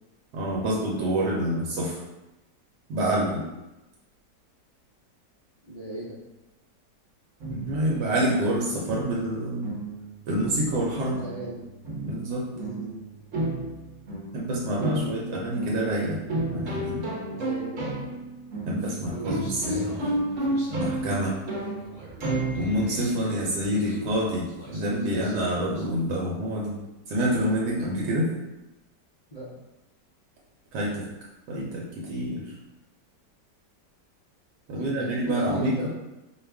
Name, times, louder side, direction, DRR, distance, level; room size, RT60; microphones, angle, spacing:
voice 1, 0.3-2.0 2.9-3.4 7.5-9.7 10.3-11.2 12.0-12.5 14.3-16.2 16.5-17.1 18.7-20.1 20.7-21.4 22.5-26.8 27.1-28.3 30.7-31.1 31.5-32.4 34.7-35.9, right 1 dB, 80° right, -4 dB, 1.4 m, -27 dB
voice 2, 5.7-6.2 11.2-11.6 12.5-12.9 17.3-17.9 23.9-24.0 29.3-29.5 34.7-35.9, right 1 dB, 50° left, -7 dB, 0.4 m, -36 dB
sound 1, 7.4-23.1, right 1 dB, 55° right, 1.1 m, -33 dB
Human voice, 19.1-25.9, equal, 25° right, 1.2 m, -42 dB
4.9 x 2.3 x 3.4 m, 1.0 s
omnidirectional pair, 1.9 m